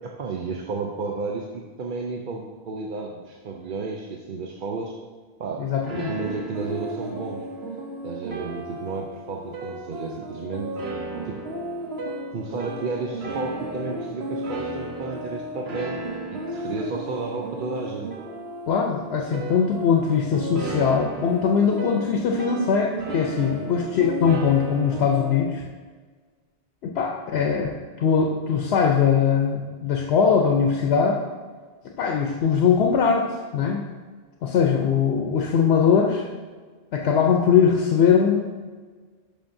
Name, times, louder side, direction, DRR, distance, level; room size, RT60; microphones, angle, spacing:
voice 1, 0.0-5.0 5.4-5.6 5.9-7.5 8.0-10.8 11.2-11.4 12.3-16.0 16.3-18.1 23.6-23.7, right 4 dB, 60° right, 0 dB, 0.7 m, -32 dB
voice 2, 5.6-6.1 18.7-25.6 26.8-31.2 32.0-33.3 33.5-33.8 34.4-36.3 36.9-38.5, left 6 dB, 85° left, 1 dB, 0.9 m, -21 dB
sound 1, 5.9-25.4, right 1 dB, 85° right, 1.2 m, -34 dB
11.5 x 5.2 x 2.6 m, 1.5 s
omnidirectional pair, 1.0 m